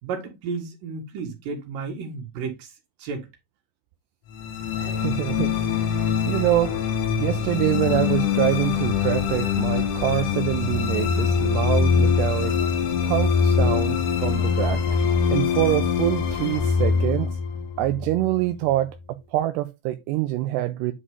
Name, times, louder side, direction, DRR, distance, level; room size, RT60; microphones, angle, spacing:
voice 1, 0.0-2.7 3.0-3.3, right 5 dB, 60° right, 3.8 m, -32 dB
sound 1, 4.3-18.7, left 6 dB, 65° left, 2.3 m, -23 dB
voice 2, 4.7-6.8 7.2-12.6 13.0-14.8 15.3-17.4 17.8-20.9, right 15 dB, 85° right, 2.8 m, -25 dB
9.8 x 5.0 x 3.6 m
omnidirectional pair, 4.8 m